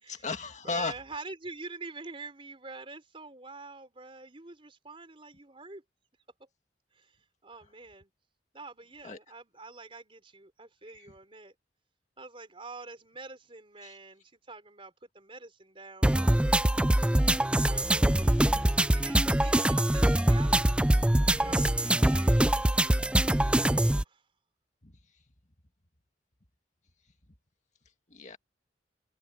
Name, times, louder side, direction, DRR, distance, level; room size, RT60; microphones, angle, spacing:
voice 1, 0.1-1.0 9.0-9.2 10.9-11.1 13.8-14.0 21.5-21.7 23.7-23.8 24.8-25.0 28.1-28.4, left 4 dB, 45° left, 1.9 m, -36 dB
voice 2, 0.6-5.8 6.4-6.5 6.9-8.1 8.5-11.5 12.2-16.6 17.6-20.7 21.3-22.3 23.4-24.2, right 3 dB, 30° right, 4.0 m, -46 dB
sound 1, 16.0-24.0, right 1 dB, 5° right, 0.3 m, -24 dB
head